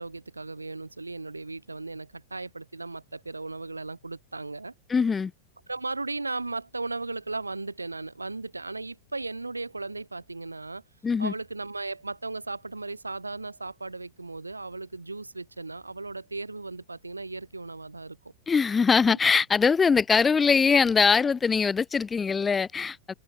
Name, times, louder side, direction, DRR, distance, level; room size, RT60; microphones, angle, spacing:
voice 1, 0.0-4.7 5.7-10.8 11.2-18.2 19.1-19.2, right 3 dB, 80° right, 4.1 m, -36 dB
voice 2, 4.9-5.3 11.0-11.3 18.5-23.1, left 5 dB, 15° left, 2.5 m, -22 dB
figure-of-eight pair, 90°, 0 cm